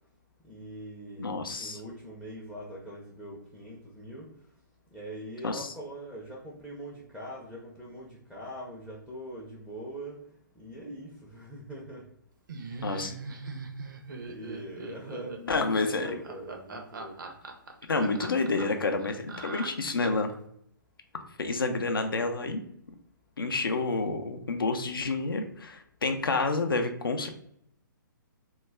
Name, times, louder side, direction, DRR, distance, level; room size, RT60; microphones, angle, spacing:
voice 1, 0.4-4.3 4.9-10.2 10.6-12.0 12.8-13.1 14.1-17.2, equal, 5° left, -4 dB, 0.4 m, -43 dB
voice 2, 1.2-1.8 5.4-5.7 12.8-13.1 15.5-16.2 17.9-20.3 21.4-22.6 23.4-27.3, left 3 dB, 85° left, 6 dB, 0.4 m, -29 dB
Laughter, 12.5-20.3, right 4 dB, 65° right, 0.5 m, -41 dB
2.3 x 2.1 x 3.2 m, 0.72 s
figure-of-eight pair, 130°, 11 cm